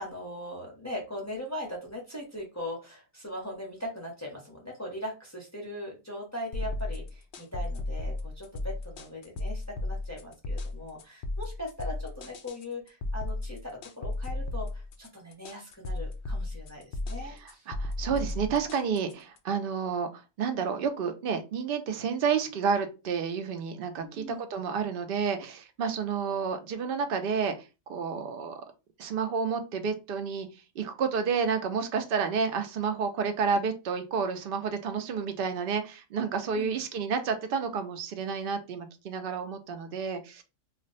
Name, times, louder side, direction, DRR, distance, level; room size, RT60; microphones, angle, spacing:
voice 1, 0.0-17.7 18.0-18.1 24.1-24.4 36.6-36.8, left 1 dB, 15° left, -2 dB, 0.7 m, -40 dB
sound 1, 6.5-19.4, left 2 dB, 65° left, 0.5 m, -34 dB
voice 2, 17.2-28.6 29.0-30.5 30.8-40.4, right 6 dB, 60° right, 7 dB, 0.6 m, -30 dB
2.4 x 2.2 x 3.8 m, 0.28 s
omnidirectional pair, 1.4 m